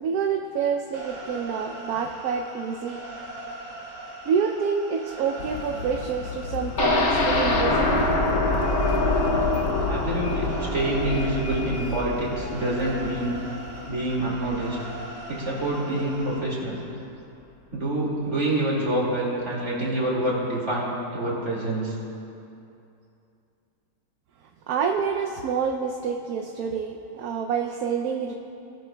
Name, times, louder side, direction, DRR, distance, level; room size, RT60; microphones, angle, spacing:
voice 1, 0.0-3.0 4.2-8.1 24.7-28.3, right 6 dB, 70° right, 2 dB, 1.0 m, -27 dB
sound 1, 0.9-16.4, right 1 dB, 85° right, 3.0 m, -40 dB
sound 2, 5.4-13.9, left 5 dB, 90° left, 1.3 m, -38 dB
sound 3, 6.8-14.6 15.0-15.1 15.5-15.6, left 2 dB, 60° left, 1.6 m, -25 dB
voice 2, 9.9-13.3 13.9-14.8 15.3-16.8 17.7-22.0, right 1 dB, 45° right, -4 dB, 2.5 m, -26 dB
18.5 x 12.0 x 2.2 m, 2.7 s
omnidirectional pair, 1.8 m